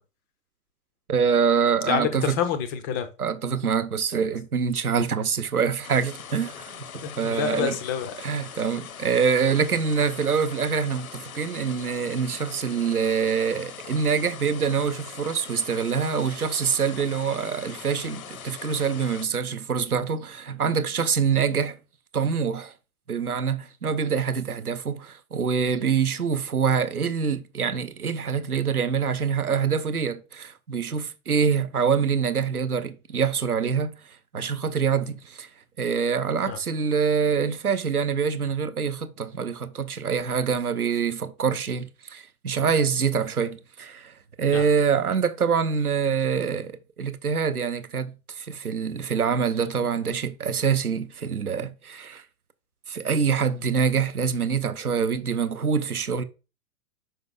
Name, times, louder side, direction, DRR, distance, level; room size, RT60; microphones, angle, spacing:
voice 1, 1.1-2.4 3.2-7.8 8.2-21.8 22.1-22.7 23.1-33.9 34.3-35.5 35.8-44.1 44.4-52.2 52.9-56.2, right 6 dB, 85° right, 0.8 m, -25 dB
voice 2, 1.8-3.1 7.0-8.1 36.5-36.6 44.5-44.6, left 7 dB, 15° left, 0.4 m, -27 dB
sound 1, 5.8-19.3, left 8 dB, 70° left, 0.8 m, -41 dB
5.4 x 5.2 x 3.6 m
figure-of-eight pair, 105°, 43 cm